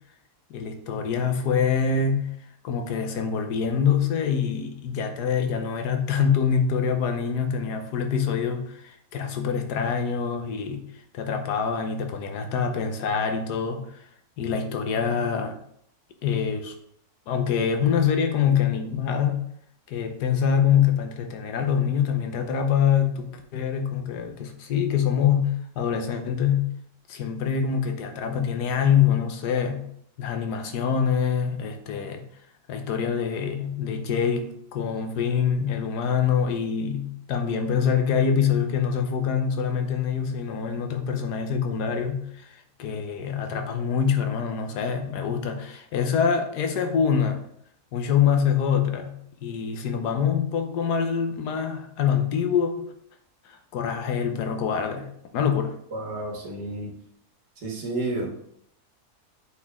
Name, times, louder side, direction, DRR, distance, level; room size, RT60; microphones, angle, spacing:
voice 1, 0.5-2.3 2.6-10.8 11.1-13.8 14.4-15.6 16.2-16.7 17.3-19.4 19.9-26.7 27.1-29.9 30.2-32.3 32.7-47.4 47.9-52.9 53.7-55.7, left 7 dB, 90° left, 5 dB, 1.4 m, -25 dB
voice 2, 55.9-56.9 57.6-58.3, right 2 dB, 90° right, -1 dB, 2.3 m, -30 dB
8.2 x 4.7 x 3.6 m, 0.71 s
omnidirectional pair, 1.7 m